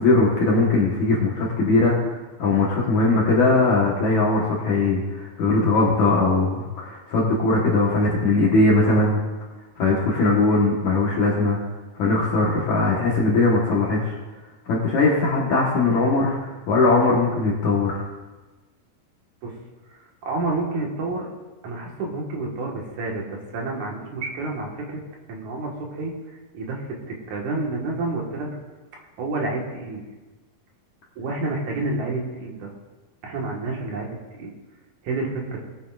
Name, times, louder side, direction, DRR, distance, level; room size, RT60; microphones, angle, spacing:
voice 1, 0.0-9.2 9.8-11.6 12.0-14.2 14.7-18.0, left 3 dB, 60° left, -3 dB, 2.4 m, -20 dB
voice 2, 19.9-21.3 21.6-25.0 25.3-26.1 26.5-28.5 29.2-30.0 31.2-32.7 33.2-34.5 35.0-35.6, right 2 dB, 60° right, -1 dB, 2.8 m, -29 dB
20.5 x 9.4 x 2.5 m, 1.2 s
omnidirectional pair, 4.4 m